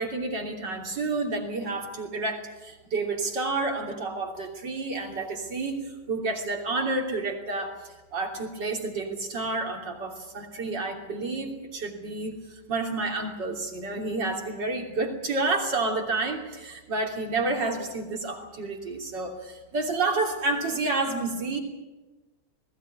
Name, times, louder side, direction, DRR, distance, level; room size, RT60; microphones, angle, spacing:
voice 1, 0.0-12.4 12.7-21.6, right 3 dB, 80° right, 2 dB, 3.8 m, -30 dB
21.0 x 16.5 x 9.5 m, 1.1 s
omnidirectional pair, 1.9 m